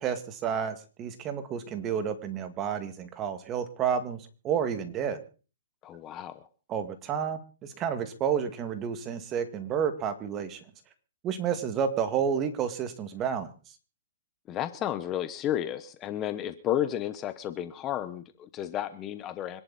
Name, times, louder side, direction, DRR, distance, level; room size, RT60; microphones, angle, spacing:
voice 1, 0.0-5.2 6.7-10.6 11.2-13.5, right 7 dB, 20° right, 9 dB, 2.0 m, -30 dB
voice 2, 5.8-6.5 14.5-19.6, left 11 dB, 20° left, 12 dB, 1.0 m, -32 dB
25.5 x 11.0 x 4.2 m, 0.37 s
hypercardioid pair, 150°, 0 cm